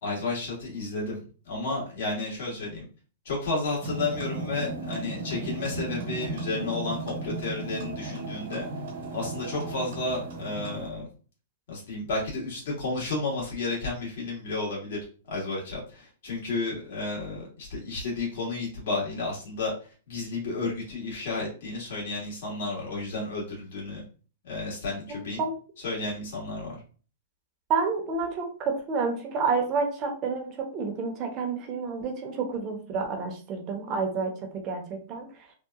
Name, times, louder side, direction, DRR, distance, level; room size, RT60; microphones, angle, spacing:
voice 1, 0.0-2.8 3.2-8.7 9.1-11.1 11.7-15.0 15.3-19.7 20.1-24.0 24.4-25.4 25.8-26.8, left 3 dB, 65° left, -3 dB, 1.3 m, -32 dB
sound 1, 3.8-10.9, right 3 dB, 65° right, 1.1 m, -36 dB
voice 2, 25.1-25.5 27.7-34.3 34.6-35.3, right 4 dB, 35° right, 3 dB, 0.7 m, -29 dB
2.8 x 2.2 x 2.4 m, 0.39 s
hypercardioid pair, 125°, 0 cm